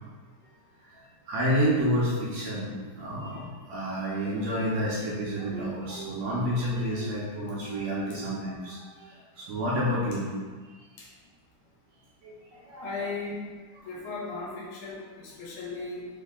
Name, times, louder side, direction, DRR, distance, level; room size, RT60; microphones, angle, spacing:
voice 1, 1.3-10.3 12.2-12.3 12.7-12.9, equal, 80° right, -6 dB, 1.6 m, -29 dB
voice 2, 12.8-13.4 13.9-16.1, left 3 dB, 75° left, -5 dB, 2.2 m, -36 dB
4.8 x 2.8 x 3.4 m, 1.4 s
omnidirectional pair, 3.7 m